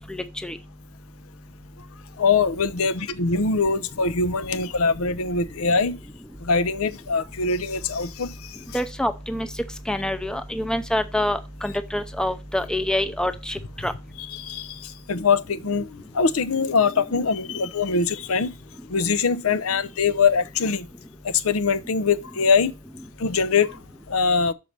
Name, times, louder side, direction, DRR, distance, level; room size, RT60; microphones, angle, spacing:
voice 1, 0.1-0.6 8.7-9.5 9.9-13.9, left 1 dB, 5° left, 0.6 m, -26 dB
voice 2, 2.2-6.0 6.4-8.5 14.2-15.9 16.1-18.5 18.9-20.9 21.2-22.7 23.2-23.8 24.1-24.5, left 5 dB, 80° left, 0.7 m, -23 dB
6.5 x 4.7 x 6.6 m
head